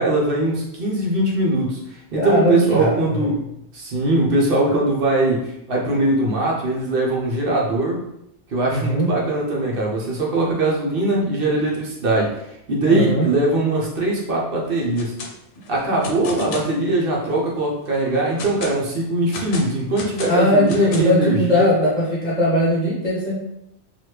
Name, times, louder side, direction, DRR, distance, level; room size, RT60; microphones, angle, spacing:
voice 1, 0.0-3.4 3.7-8.0 8.5-15.1 15.7-21.7, right 2 dB, 55° right, -3 dB, 0.8 m, -21 dB
voice 2, 2.2-3.3 8.7-9.1 12.9-13.3 20.2-23.4, equal, 45° left, -5 dB, 0.7 m, -20 dB
sound 1, 14.8-15.3 15.6-16.7 17.2-17.3 17.9-18.8 19.3-21.2, left 3 dB, 90° left, 0.9 m, -33 dB
3.0 x 2.4 x 3.2 m, 0.79 s
omnidirectional pair, 1.2 m